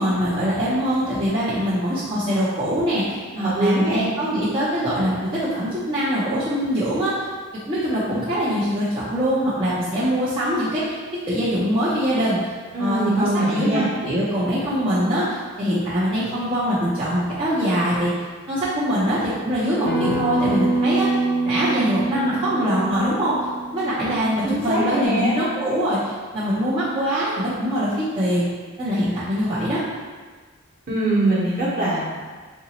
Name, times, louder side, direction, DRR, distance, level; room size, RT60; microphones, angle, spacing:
voice 1, 0.0-3.2 3.5-7.1 7.7-11.0 11.3-12.5 12.8-18.1 18.5-23.4 23.7-28.5 28.8-29.8, equal, 25° right, -11 dB, 0.6 m, -23 dB
voice 2, 3.3-4.1 12.7-13.9 24.1-25.4 30.9-32.0, right 1 dB, 40° right, -8 dB, 1.1 m, -22 dB
Acoustic guitar, 19.9-25.1, right 2 dB, 50° left, 0.5 m, -25 dB
3.9 x 2.6 x 2.9 m, 1.5 s
head